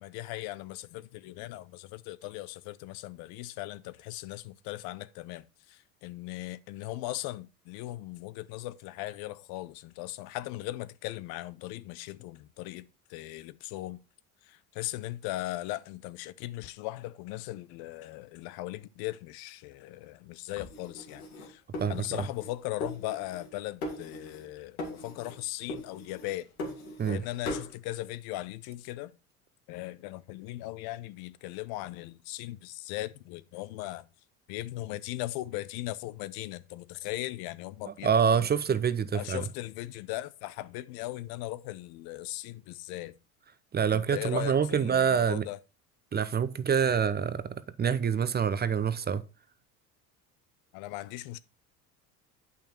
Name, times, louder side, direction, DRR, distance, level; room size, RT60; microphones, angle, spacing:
voice 1, 0.0-12.8 13.1-14.0 14.5-21.6 21.9-26.5 27.1-29.1 29.7-34.0 34.5-38.5 39.1-43.1 43.9-45.6 50.7-51.4, left 17 dB, 60° left, 0.7 m, -38 dB
sound 1, 20.6-22.5 22.8-23.5 23.8-24.5 24.8-25.4 25.7-27.2 27.4-27.7, left 1 dB, 85° left, 2.6 m, -39 dB
voice 2, 21.8-22.2 27.0-27.2 37.9-39.4 43.7-45.5 46.1-49.2, right 7 dB, 25° right, 0.7 m, -26 dB
8.6 x 5.7 x 4.4 m
hypercardioid pair, 70°, 43 cm